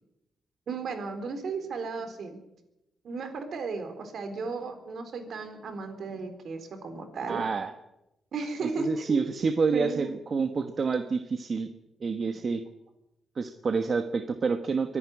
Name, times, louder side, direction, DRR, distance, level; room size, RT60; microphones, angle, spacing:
voice 1, 0.7-2.4 3.0-7.4 8.3-9.3 9.7-10.1, right 4 dB, 60° right, 7 dB, 3.9 m, -35 dB
voice 2, 7.3-7.7 8.8-11.7 12.0-12.6 13.3-15.0, right 4 dB, 40° right, 8 dB, 1.2 m, -28 dB
24.0 x 11.0 x 9.8 m, 0.89 s
cardioid pair, 135°, 0 cm